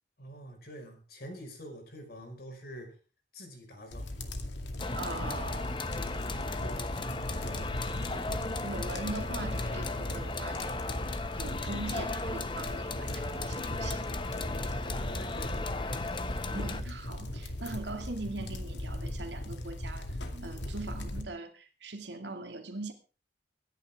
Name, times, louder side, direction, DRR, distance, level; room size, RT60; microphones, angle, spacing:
voice 1, 0.2-3.0 3.3-4.1 5.9-7.7 14.6-15.7, equal, 55° left, 5.2 m, -46 dB
sound 1, 3.9-21.2, left 1 dB, 80° left, 2.3 m, -38 dB
sound 2, 4.8-16.8, left 3 dB, 25° left, 1.0 m, -37 dB
voice 2, 4.9-5.8 8.6-10.6 11.4-14.0 16.5-22.9, right 2 dB, 75° right, 2.3 m, -41 dB
24.0 x 10.5 x 3.6 m
head